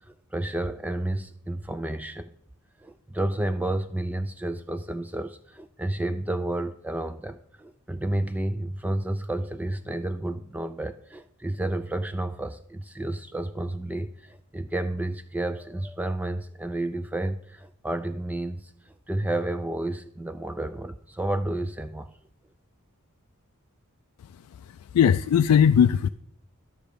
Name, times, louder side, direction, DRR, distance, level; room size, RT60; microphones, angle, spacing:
voice 1, 0.0-2.3 2.8-22.1, right 1 dB, 5° right, 10 dB, 0.3 m, -31 dB
voice 2, 24.2-26.1, left 8 dB, 85° left, 11 dB, 0.3 m, -20 dB
12.5 x 6.4 x 5.0 m, 0.69 s
head